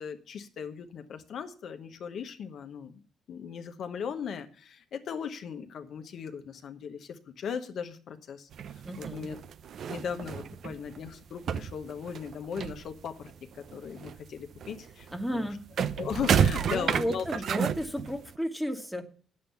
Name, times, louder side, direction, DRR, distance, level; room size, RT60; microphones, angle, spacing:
voice 1, 0.0-3.0 3.3-8.5 9.0-9.4 9.9-15.5 16.0-17.4, left 7 dB, 65° left, 7 dB, 1.0 m, -38 dB
sound 1, 8.5-11.1 11.4-13.3 13.6-18.4, right 7 dB, 65° right, 0.6 m, -31 dB
voice 2, 8.8-9.3 15.1-15.6 16.6-19.0, equal, 5° right, 7 dB, 1.4 m, -33 dB
8.8 x 7.6 x 6.8 m, 0.41 s
cardioid pair, 90°, 0 cm